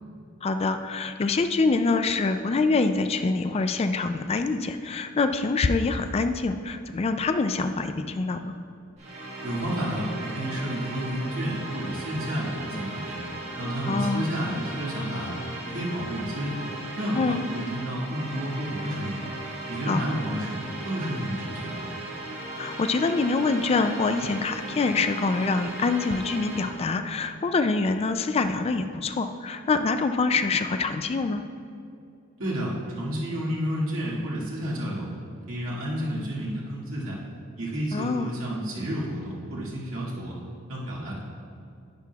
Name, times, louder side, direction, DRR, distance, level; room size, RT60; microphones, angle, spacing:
voice 1, 0.4-8.5 13.9-14.3 17.1-17.4 19.9-20.0 22.6-31.4 37.9-38.3, left 3 dB, 30° left, 8 dB, 0.3 m, -25 dB
sound 1, 9.0-26.9, right 2 dB, 35° right, 1.6 m, -37 dB
voice 2, 9.4-13.2 13.6-15.3 15.6-16.6 16.9-19.2 19.7-20.6 20.8-21.8 32.4-35.1 35.5-37.2 37.6-40.3 40.7-41.2, equal, 85° right, -5 dB, 2.0 m, -31 dB
10.5 x 9.4 x 2.3 m, 2.5 s
head